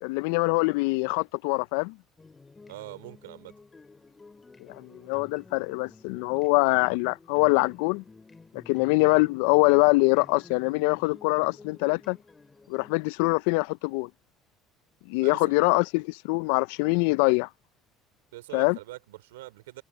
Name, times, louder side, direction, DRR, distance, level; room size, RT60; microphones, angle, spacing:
voice 1, 0.0-2.0 4.7-8.0 8.7-12.2 12.7-14.1 15.1-17.5 18.5-18.8, left 27 dB, 75° left, 0.5 m, -24 dB
sound 1, 2.2-12.9, left 3 dB, 20° left, 5.2 m, -52 dB
voice 2, 2.7-3.6 15.2-15.4 18.3-19.8, right 18 dB, 85° right, 3.2 m, -43 dB
hypercardioid pair, 70°, 0 cm